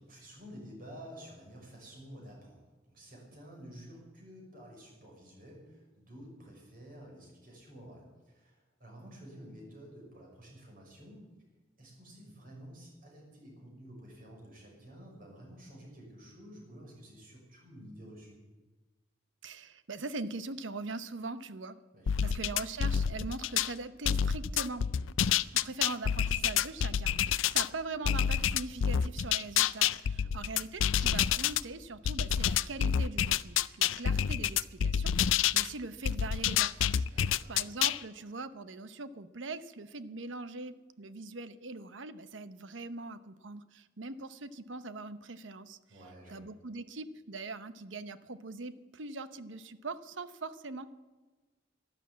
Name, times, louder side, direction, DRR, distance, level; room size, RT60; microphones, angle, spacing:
voice 1, 0.0-11.2 11.8-18.4 21.9-22.4 30.1-30.4 37.1-37.6 45.9-46.4, equal, 50° right, -1 dB, 6.3 m, -51 dB
voice 2, 19.4-21.8 22.2-24.9 25.5-45.8 46.3-50.9, right 3 dB, 75° right, 13 dB, 0.9 m, -42 dB
sound 1, 22.1-23.7 24.0-27.7 28.0-31.6 32.0-35.7 36.0-38.0, left 9 dB, 85° left, 0.4 m, -28 dB
13.0 x 12.0 x 8.5 m, 1.3 s
head